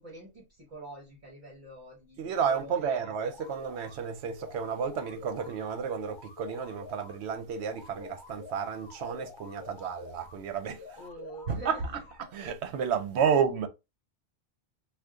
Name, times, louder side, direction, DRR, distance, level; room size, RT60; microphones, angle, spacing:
voice 1, 0.0-3.0 11.0-11.8, right 1 dB, 45° right, 1.1 m, -46 dB
voice 2, 2.2-11.0 11.5-11.8 12.3-13.7, right 7 dB, 80° right, 0.9 m, -31 dB
sound 1, 2.8-4.0 4.4-7.2 7.6-10.4 10.8-12.3, left 5 dB, 35° left, 0.4 m, -48 dB
2.5 x 2.3 x 3.5 m
omnidirectional pair, 1.1 m